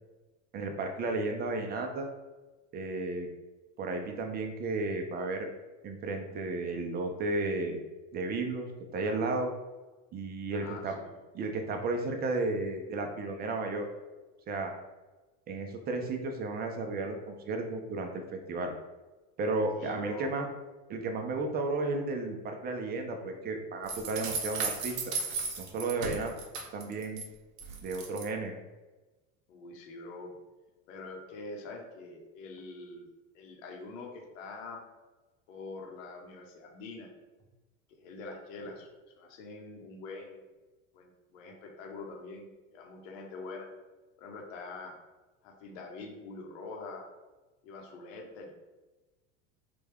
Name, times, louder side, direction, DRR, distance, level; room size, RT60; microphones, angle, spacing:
voice 1, 0.5-2.1 2.7-3.3 3.8-5.5 5.8-7.8 8.1-9.5 10.1-10.9 11.3-13.9 14.5-14.7 15.5-18.7 19.4-20.5 20.9-24.9 25.6-26.3 26.7-27.2 27.8-28.5, right 3 dB, 25° right, 4 dB, 0.5 m, -33 dB
voice 2, 10.5-11.1 19.7-20.3 29.5-30.3 30.9-33.1 33.3-34.8 35.5-37.1 37.9-38.9 39.2-40.5 40.9-43.7 44.2-44.9 45.4-47.1 47.6-48.5, left 3 dB, 70° left, 1 dB, 1.0 m, -44 dB
sound 1, 23.9-27.2 27.6-28.3, right 5 dB, 70° right, 0.9 m, -35 dB
3.3 x 2.3 x 3.4 m, 1.2 s
supercardioid pair, 110°, 41 cm